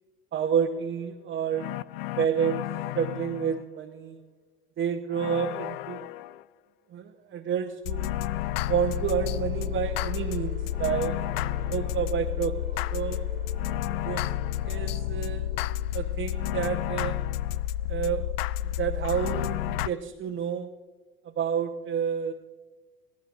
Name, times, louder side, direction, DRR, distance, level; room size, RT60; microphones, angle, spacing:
voice 1, 0.3-1.7 2.2-2.7 2.9-4.2 4.8-6.0 6.9-8.1 8.7-11.2 11.7-12.6 12.9-13.3 14.0-14.2 14.6-15.6 15.9-17.2 17.9-20.7 21.2-22.3, right 7 dB, 40° right, 1 dB, 1.1 m, -29 dB
sound 1, 1.5-3.6 5.1-6.4 7.8-19.9, left 13 dB, 80° left, 0.4 m, -31 dB
sound 2, 7.5-16.6, right 4 dB, 25° right, 1.9 m, -50 dB
21.5 x 16.0 x 2.6 m, 1.4 s
hypercardioid pair, 85°, 29 cm